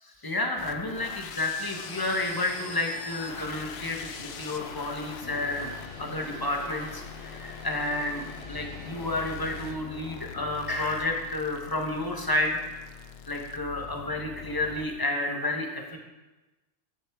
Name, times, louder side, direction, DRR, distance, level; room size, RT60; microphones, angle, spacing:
voice 1, 0.0-5.7 6.0-12.6 13.3-16.0, left 2 dB, 20° left, 2 dB, 1.0 m, -31 dB
sound 1, 0.6-15.0, left 8 dB, 65° left, 0.8 m, -43 dB
Vehicle, 1.8-9.7, left 2 dB, 85° left, 1.6 m, -46 dB
9.6 x 7.3 x 3.5 m, 1.1 s
omnidirectional pair, 1.2 m